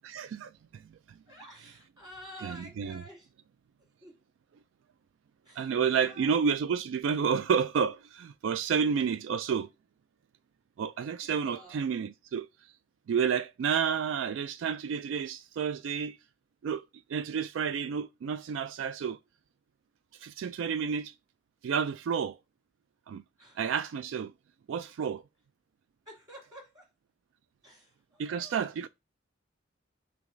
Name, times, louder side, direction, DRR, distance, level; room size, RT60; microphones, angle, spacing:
voice 1, 0.0-0.8 2.4-3.0 5.6-9.7 10.8-12.5 13.1-16.2 16.6-16.8 17.1-19.2 20.1-21.1 21.6-22.4 23.1-23.2 23.6-24.3 24.7-25.2 28.2-28.9, right 6 dB, 75° right, 0.3 m, -30 dB
voice 2, 1.2-3.3 3.8-4.2 5.4-6.4 8.6-8.7 11.2-11.8 23.4-23.7 26.0-26.9 27.6-28.9, equal, 20° right, 2.8 m, -51 dB
6.1 x 2.3 x 3.8 m
head